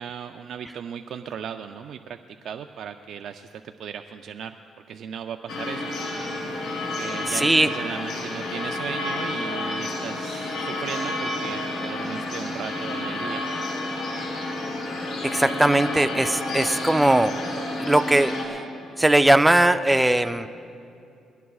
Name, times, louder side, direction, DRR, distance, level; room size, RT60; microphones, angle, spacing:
voice 1, 0.0-4.6 4.9-5.9 7.0-13.4, right 7 dB, 70° right, 6 dB, 0.4 m, -36 dB
sound 1, 5.5-18.5, left 2 dB, 70° left, 3.1 m, -30 dB
voice 2, 7.3-7.7 15.2-17.3 17.8-18.6 19.0-20.5, right 1 dB, 10° right, 9 dB, 0.4 m, -19 dB
21.5 x 17.5 x 2.4 m, 2.6 s
cardioid pair, 90°, 0 cm